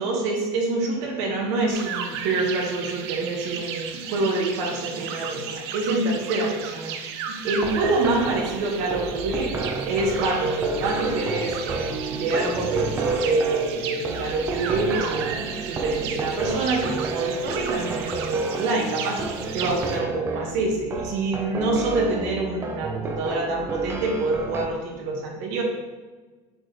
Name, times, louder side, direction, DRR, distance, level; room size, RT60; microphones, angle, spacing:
voice 1, 0.0-19.2 19.5-25.6, right 3 dB, 60° right, -1 dB, 1.7 m, -26 dB
sound 1, 1.7-20.0, right 7 dB, 90° right, 0.7 m, -35 dB
sound 2, 7.6-24.7, right 3 dB, 20° right, 0.5 m, -31 dB
7.3 x 5.2 x 3.2 m, 1.3 s
cardioid pair, 160°, 13 cm